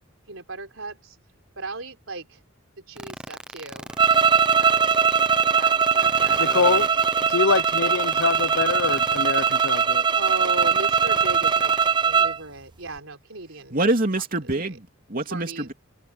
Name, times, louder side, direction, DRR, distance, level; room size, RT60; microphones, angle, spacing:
voice 1, 0.3-1.2 1.6-2.4 2.9-3.9 4.6-5.0 5.5-7.0 10.1-13.8 15.3-15.7, right 2 dB, 65° right, 5.0 m, -37 dB
sound 1, 3.0-9.8 10.2-11.9, right 1 dB, 5° right, 0.9 m, -35 dB
sound 2, 4.0-12.4, right 6 dB, 20° right, 0.5 m, -21 dB
voice 2, 6.4-6.9 7.3-10.0, left 4 dB, 70° left, 0.9 m, -24 dB
voice 3, 13.7-15.7, right 2 dB, 45° right, 3.1 m, -25 dB
head